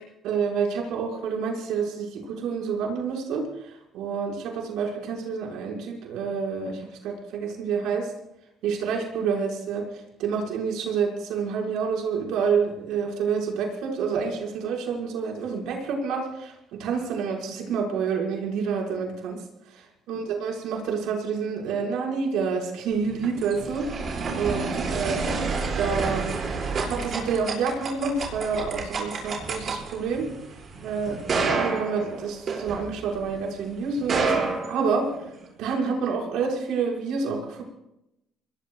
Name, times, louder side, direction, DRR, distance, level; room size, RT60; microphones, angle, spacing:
voice 1, 0.2-8.1 8.6-9.8 10.2-16.5 16.8-19.4 20.1-23.9 24.3-25.2 25.8-26.3 26.8-30.3 30.8-31.2 31.5-35.1 35.6-37.6, right 5 dB, 85° right, -1 dB, 6.3 m, -28 dB
sound 1, 23.0-33.3 33.9-35.4, right 4 dB, 45° right, 6.5 m, -29 dB
26.0 x 21.5 x 2.6 m, 0.84 s
cardioid pair, 130°, 0 cm